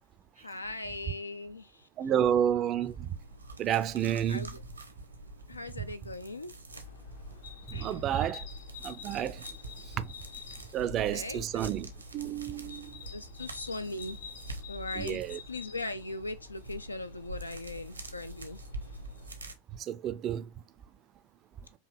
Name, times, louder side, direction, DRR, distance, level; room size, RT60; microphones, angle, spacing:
voice 1, 0.4-1.9 4.3-4.6 5.5-6.5 7.7-8.0 10.9-11.5 13.1-14.2 14.7-15.2 15.5-18.6, left 2 dB, 80° left, 0.3 m, -39 dB
voice 2, 2.0-3.1 3.6-4.5 7.7-8.4 8.8-9.4 10.0-10.1 10.7-12.9 15.0-15.4 19.9-20.5, right 10 dB, 30° right, 0.4 m, -30 dB
sound 1, 2.8-19.5, right 2 dB, 80° right, 0.8 m, -46 dB
sound 2, 6.7-19.3, left 7 dB, 55° left, 0.7 m, -49 dB
4.6 x 2.8 x 3.1 m
figure-of-eight pair, 90°, 0 cm